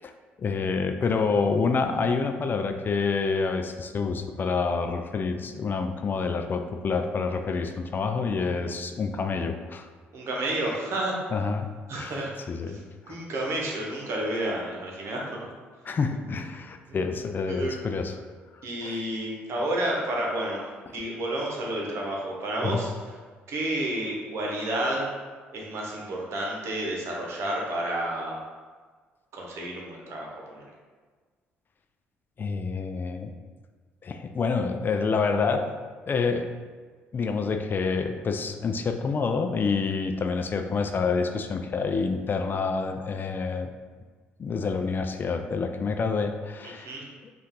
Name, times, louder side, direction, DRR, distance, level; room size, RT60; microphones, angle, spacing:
voice 1, 0.4-9.9 11.3-12.2 12.5-12.8 13.1-13.2 15.8-18.1 18.5-19.0 22.6-22.8 32.4-33.3 34.0-35.7 36.0-36.5 37.1-43.7 44.4-46.9 47.2-47.3, left 4 dB, 40° left, 6 dB, 0.4 m, -28 dB
voice 2, 10.1-11.2 11.9-12.3 12.7-12.8 13.1-15.5 16.9-17.0 17.5-17.9 18.6-22.9 23.5-25.1 25.5-28.4 29.3-30.6 46.8-47.0, right 1 dB, 60° right, -2 dB, 1.1 m, -30 dB
5.2 x 2.6 x 3.7 m, 1.5 s
hypercardioid pair, 55°, 5 cm